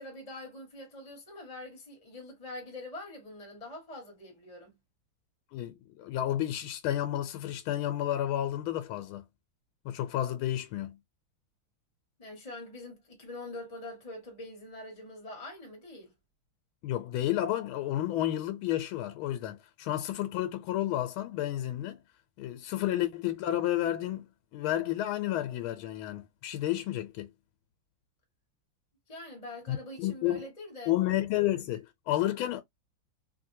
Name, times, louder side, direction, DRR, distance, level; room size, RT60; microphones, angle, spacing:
voice 1, 0.0-4.7 12.2-16.1 29.1-30.9, left 1 dB, 20° left, 1.3 m, -44 dB
voice 2, 5.5-9.2 9.8-11.0 16.8-22.0 22.4-24.3 24.5-27.3 29.7-30.4 30.9-32.6, left 13 dB, 85° left, 1.5 m, -31 dB
3.2 x 2.7 x 2.6 m
omnidirectional pair, 2.3 m